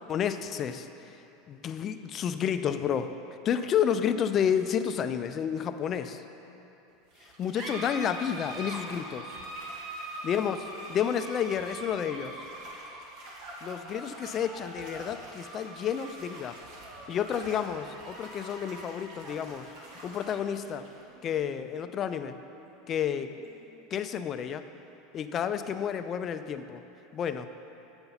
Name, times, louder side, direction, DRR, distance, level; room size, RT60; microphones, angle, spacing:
voice 1, 0.1-0.9 1.5-3.2 3.4-6.2 7.4-9.3 10.2-12.4 13.6-16.6 17.1-19.7 20.0-20.8 21.2-22.4 22.9-23.3 23.9-24.6 25.1-26.8 27.1-27.5, left 8 dB, 40° left, 10 dB, 0.4 m, -30 dB
sound 1, 7.1-24.1, right 1 dB, 60° right, 1.6 m, -43 dB
7.9 x 5.5 x 5.8 m, 2.9 s
hypercardioid pair, 90°, 0 cm